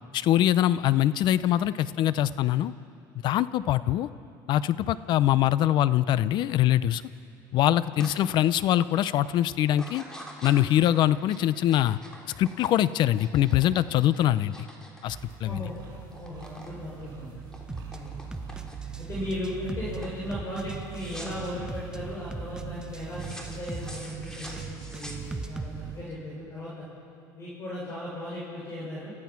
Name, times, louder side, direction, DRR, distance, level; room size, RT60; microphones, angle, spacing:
voice 1, 0.1-2.7 3.2-4.1 4.5-7.0 7.5-10.0 10.4-12.0 12.4-14.7 15.0-15.7, left 12 dB, 55° left, 16 dB, 0.7 m, -23 dB
sound 1, 8.0-8.2 8.6-9.0 9.7-15.8 16.0-16.7 17.0-19.0 19.5-19.8 20.0-20.2 20.9-21.5 23.1-25.6, equal, 5° left, 3.3 m, -46 dB
sound 2, 15.1-26.0, right 8 dB, 55° right, 6.1 m, -41 dB
voice 2, 15.4-15.9 16.2-17.3 17.9-18.1 19.0-26.9 27.3-29.1, left 1 dB, 35° left, -7 dB, 6.5 m, -37 dB
sound 3, 17.7-18.0 18.3-19.1 19.3-20.0 20.3-21.0 21.3-22.0 22.3-23.1 23.3-24.0 24.3-25.7, right 1 dB, 10° right, 1.0 m, -38 dB
29.5 x 14.5 x 6.0 m, 2.5 s
supercardioid pair, 110°, 9 cm